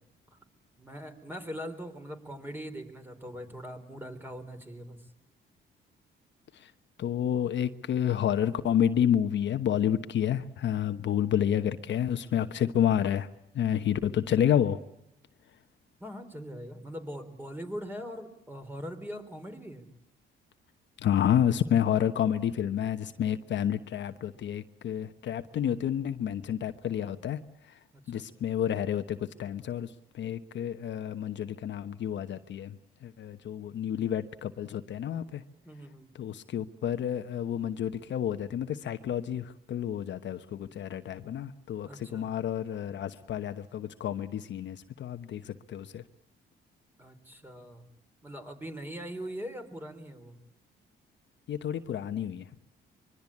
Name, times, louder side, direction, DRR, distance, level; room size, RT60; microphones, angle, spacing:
voice 1, 0.8-5.1 16.0-19.9 27.9-28.2 35.6-36.1 41.9-42.3 47.0-47.8 48.2-50.4, equal, 10° right, 6 dB, 3.9 m, -41 dB
voice 2, 7.0-13.3 13.5-14.8 21.0-27.4 28.1-32.8 33.0-35.4 36.1-46.0 51.5-52.5, left 9 dB, 65° left, 9 dB, 1.1 m, -29 dB
24.5 x 22.5 x 8.6 m, 0.81 s
cardioid pair, 90°, 20 cm